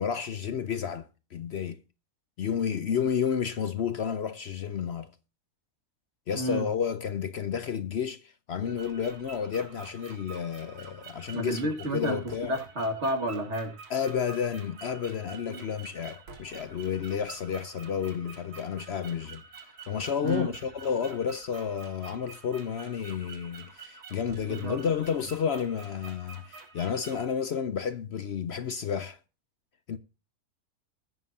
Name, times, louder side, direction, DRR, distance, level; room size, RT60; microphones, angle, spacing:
voice 1, 0.0-1.8 2.4-5.1 6.3-12.6 13.9-19.4 19.9-29.2 29.9-30.0, left 7 dB, 60° left, 0.7 m, -31 dB
voice 2, 6.3-6.7 11.3-12.2 12.5-13.7 15.5-15.6 20.2-20.5 24.5-24.9, right 1 dB, 45° right, 2.3 m, -31 dB
sound 1, 8.6-27.3, right 5 dB, 70° right, 2.3 m, -48 dB
21.0 x 7.3 x 2.7 m
omnidirectional pair, 1.7 m